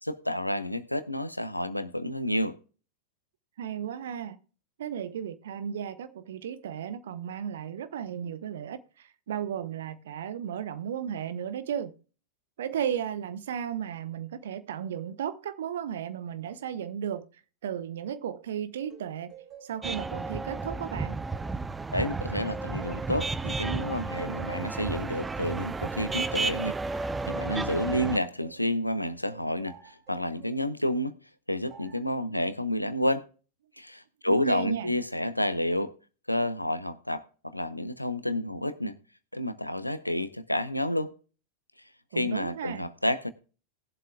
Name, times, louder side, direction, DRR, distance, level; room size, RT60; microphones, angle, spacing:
voice 1, 0.0-2.6 21.9-26.8 27.2-31.1 31.5-33.3 33.8-35.9 36.3-39.0 39.3-41.1 42.1-43.3, left 1 dB, 85° left, 0.8 m, -30 dB
voice 2, 3.6-4.4 4.8-11.9 12.6-17.3 17.6-19.3 19.6-21.2 34.3-34.9 42.1-42.9, right 9 dB, 60° right, 0.9 m, -35 dB
sound 1, 18.9-23.9 24.4-28.7 29.2-30.7 31.7-32.1, right 9 dB, 35° right, 4.1 m, -53 dB
sound 2, 19.8-28.2, right 3 dB, 10° right, 0.5 m, -32 dB
19.0 x 7.5 x 2.3 m
figure-of-eight pair, 90°, 0 cm